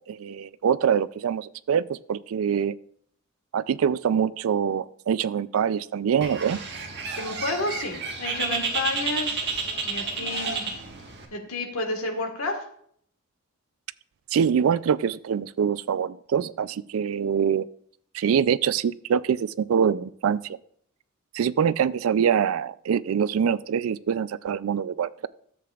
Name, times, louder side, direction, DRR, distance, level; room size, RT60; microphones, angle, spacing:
voice 1, 0.1-2.7 3.5-6.6 14.3-17.6 18.1-20.4 21.3-25.3, right 7 dB, 70° right, 18 dB, 0.3 m, -24 dB
Bird, 6.2-11.3, right 4 dB, 55° right, 1.5 m, -31 dB
voice 2, 7.1-9.5 9.8-10.6 11.3-12.6, left 2 dB, 85° left, 4 dB, 1.6 m, -30 dB
13.5 x 7.7 x 2.4 m, 0.64 s
head